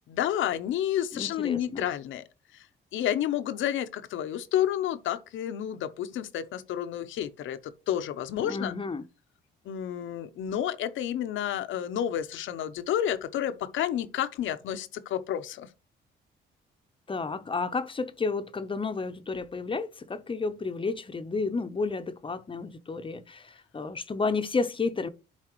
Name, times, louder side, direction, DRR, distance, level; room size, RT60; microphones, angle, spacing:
voice 1, 0.1-2.2 2.5-2.6 2.9-8.8 9.6-15.7, left 11 dB, 75° left, 0.7 m, -30 dB
voice 2, 1.1-1.8 8.4-9.0 17.1-25.1, left 4 dB, 25° left, 0.7 m, -31 dB
11.5 x 4.1 x 3.0 m
cardioid pair, 90°, 20 cm